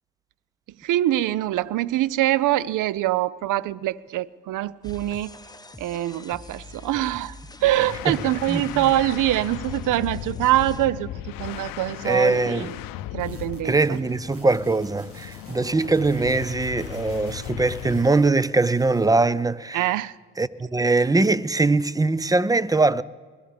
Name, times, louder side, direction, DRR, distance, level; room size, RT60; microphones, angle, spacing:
voice 1, 0.8-5.3 5.8-7.3 7.6-12.8 13.1-14.0 19.7-20.1, right 14 dB, 65° right, 0.5 m, -24 dB
sound 1, 4.8-10.9, left 2 dB, 10° left, 0.9 m, -43 dB
sound 2, 7.6-18.1, left 13 dB, 70° left, 0.6 m, -36 dB
voice 2, 8.5-8.9 12.0-12.7 13.6-20.0 20.4-23.0, right 3 dB, 10° right, 0.4 m, -22 dB
sound 3, 13.2-18.3 18.6-19.1, right 2 dB, 40° right, 1.8 m, -51 dB
21.0 x 13.0 x 3.4 m
hypercardioid pair, 50°, 35 cm